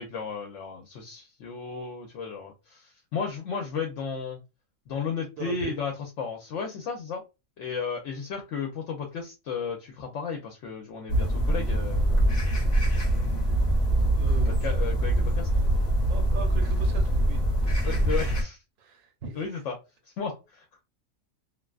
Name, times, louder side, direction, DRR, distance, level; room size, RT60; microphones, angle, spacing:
voice 1, 0.0-4.4 4.9-7.2 7.6-12.3 14.5-15.5 17.8-18.6 19.4-19.7 20.2-20.8, left 5 dB, 70° left, 0.9 m, -34 dB
voice 2, 5.4-5.7 14.2-14.7 16.1-17.7 18.8-19.6, right 5 dB, 75° right, 1.1 m, -40 dB
sound 1, 11.1-18.4, right 1 dB, 40° left, 0.8 m, -24 dB
2.5 x 2.3 x 2.3 m
omnidirectional pair, 1.4 m